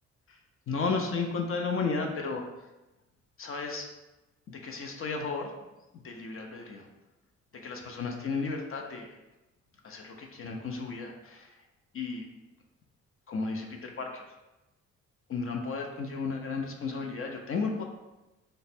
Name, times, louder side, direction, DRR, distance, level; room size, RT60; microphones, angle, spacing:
voice 1, 0.7-2.5 3.4-3.9 4.5-5.5 6.0-6.9 7.5-9.1 9.8-11.5 11.9-12.2 13.3-14.2 15.3-17.8, left 4 dB, 45° left, 2 dB, 0.5 m, -33 dB
3.1 x 2.1 x 4.1 m, 1.0 s
cardioid pair, 90°, 30 cm